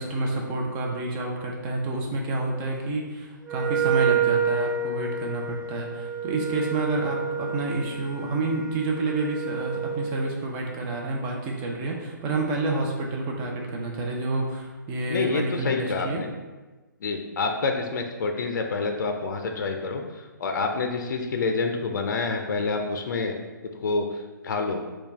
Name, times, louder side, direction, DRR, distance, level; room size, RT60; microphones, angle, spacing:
voice 1, 0.0-16.2, right 2 dB, 25° right, 0 dB, 0.6 m, -29 dB
Wind instrument woodwind instrument, 3.4-10.1, right 7 dB, 55° right, 0.8 m, -28 dB
voice 2, 15.1-16.3 17.0-23.3 23.8-24.8, left 4 dB, 60° left, 4 dB, 0.4 m, -27 dB
4.4 x 2.3 x 3.3 m, 1.2 s
figure-of-eight pair, 140°, 11 cm